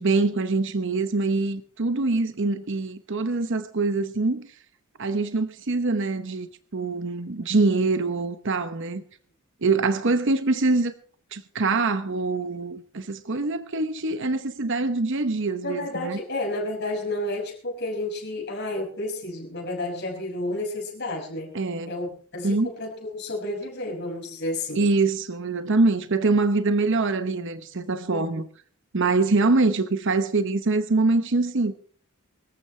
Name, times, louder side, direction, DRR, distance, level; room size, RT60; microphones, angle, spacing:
voice 1, 0.0-4.5 5.0-9.0 9.6-10.9 11.3-16.2 21.5-21.9 22.4-22.7 24.7-28.5 28.9-31.7, right 3 dB, 60° right, 0.9 m, -24 dB
voice 2, 15.6-21.6 21.9-24.8 28.1-28.3, left 1 dB, 50° left, 6.1 m, -31 dB
23.5 x 14.0 x 3.3 m
head